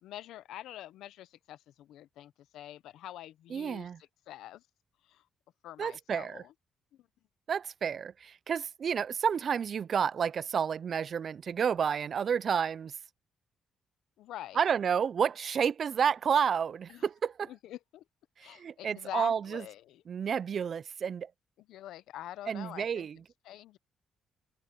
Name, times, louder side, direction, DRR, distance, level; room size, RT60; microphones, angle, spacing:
voice 1, 0.0-4.7 5.0-5.3 5.6-6.5 6.9-7.1 14.2-14.7 16.9-17.1 17.4-18.0 18.4-20.0 21.6-23.1 23.4-23.8, left 13 dB, 85° left, 0.8 m, -45 dB
voice 2, 3.5-4.0 5.8-6.4 7.5-13.0 14.6-17.5 18.4-19.6 20.1-21.3 22.5-23.2, right 7 dB, 50° right, 0.3 m, -30 dB
cardioid pair, 90°, 0 cm